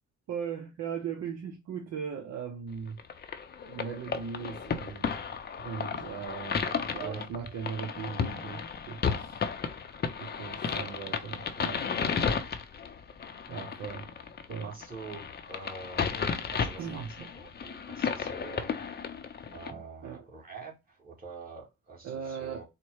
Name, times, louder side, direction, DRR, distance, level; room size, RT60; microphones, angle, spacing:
voice 1, 0.3-3.0 3.7-5.2 5.6-6.7 6.9-9.4 10.2-11.9 13.5-14.1 14.5-14.8 16.8-17.3 19.7-20.2 22.0-22.6, right 7 dB, 60° right, 0.7 m, -38 dB
sound 1, 3.0-19.7, left 6 dB, 35° left, 0.6 m, -34 dB
voice 2, 4.9-5.3 6.6-7.3 10.6-10.9 13.5-13.8 14.6-16.1 16.5-17.0 17.4-18.9 19.5-22.6, right 3 dB, 30° right, 1.9 m, -46 dB
4.2 x 2.2 x 4.6 m
cardioid pair, 90°, 30 cm